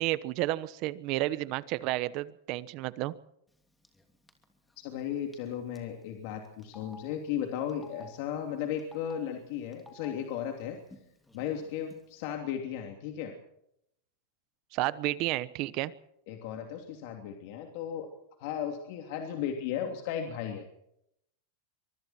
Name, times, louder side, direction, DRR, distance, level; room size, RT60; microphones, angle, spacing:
voice 1, 0.0-3.1 14.7-15.9, right 17 dB, 40° right, 16 dB, 1.0 m, -31 dB
Telephone, 3.8-4.0 4.3-4.4 5.3-5.5 5.7-5.8 6.6-6.9 7.7-8.0 8.8-9.1 9.7-10.1 10.9-11.0 11.3-11.9, left 1 dB, 5° left, 2.8 m, -52 dB
voice 2, 4.8-10.8 11.3-13.3 16.3-18.1 18.4-20.6, left 9 dB, 50° left, 3 dB, 3.0 m, -35 dB
24.5 x 24.0 x 4.5 m, 0.76 s
supercardioid pair, 165°, 0 cm